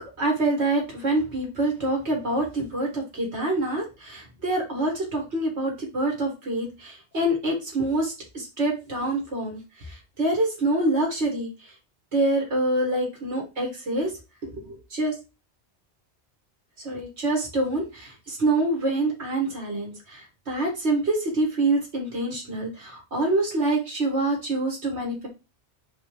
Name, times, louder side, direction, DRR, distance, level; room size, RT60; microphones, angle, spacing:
voice 1, 0.2-11.7 12.1-14.1 14.4-15.1 16.8-25.3, right 2 dB, 75° right, 0 dB, 2.2 m, -26 dB
4.5 x 4.3 x 5.1 m, 0.28 s
omnidirectional pair, 1.1 m